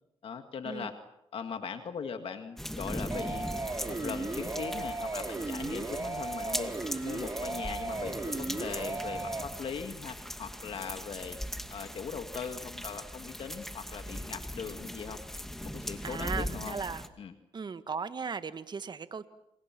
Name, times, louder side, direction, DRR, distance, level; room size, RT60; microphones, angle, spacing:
voice 1, 0.2-0.9 1.3-3.5 3.9-6.7 7.0-11.4 11.7-15.2 15.6-16.8 17.2-17.3, left 6 dB, 65° left, 7 dB, 2.1 m, -40 dB
sound 1, 2.6-17.1, equal, 5° left, 2.2 m, -40 dB
sound 2, 3.1-9.4, right 3 dB, 30° right, 3.8 m, -36 dB
voice 2, 16.0-17.0 17.5-19.3, right 5 dB, 45° right, 11 dB, 1.6 m, -37 dB
28.5 x 28.0 x 6.1 m, 0.85 s
cardioid pair, 80°, 10 cm